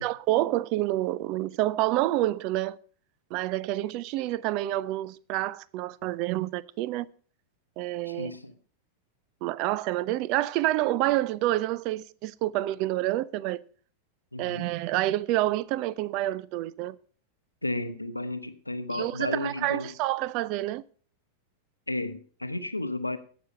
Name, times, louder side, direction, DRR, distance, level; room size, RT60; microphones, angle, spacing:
voice 1, 0.0-2.8 3.3-7.1 7.8-8.3 9.4-13.6 14.4-17.0 18.9-20.8, right 16 dB, 40° right, 0.5 m, -28 dB
voice 2, 8.1-8.5 14.3-14.7 17.6-19.9 21.9-23.2, left 2 dB, 85° left, 0.8 m, -33 dB
17.0 x 6.1 x 5.5 m
figure-of-eight pair, 90°, 0 cm